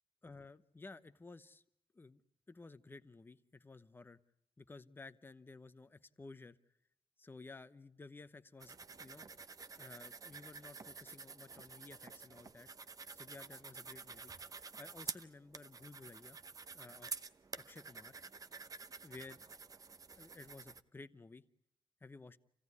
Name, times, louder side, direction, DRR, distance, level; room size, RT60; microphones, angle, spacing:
voice 1, 0.2-1.6 1.9-2.2 2.5-4.2 4.6-6.6 7.2-9.3 9.8-12.7 13.1-14.3 14.8-16.4 16.7-17.1 17.6-18.2 19.0-19.4 20.2-21.4 22.0-22.4, left 3 dB, 20° left, 13 dB, 0.8 m, -54 dB
sound 1, 8.6-20.8, right 4 dB, 35° right, 0.8 m, -50 dB
28.5 x 16.5 x 9.6 m, 0.82 s
wide cardioid pair, 150°, 11 cm